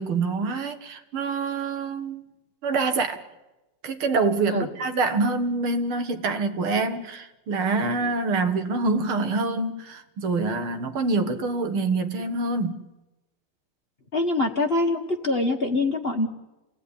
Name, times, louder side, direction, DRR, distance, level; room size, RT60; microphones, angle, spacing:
voice 1, 0.0-2.2 2.6-3.2 3.8-12.8, right 3 dB, 75° right, 8 dB, 2.4 m, -26 dB
voice 2, 14.1-16.3, left 2 dB, 30° left, 5 dB, 1.3 m, -24 dB
28.5 x 18.0 x 9.9 m, 1.0 s
omnidirectional pair, 2.3 m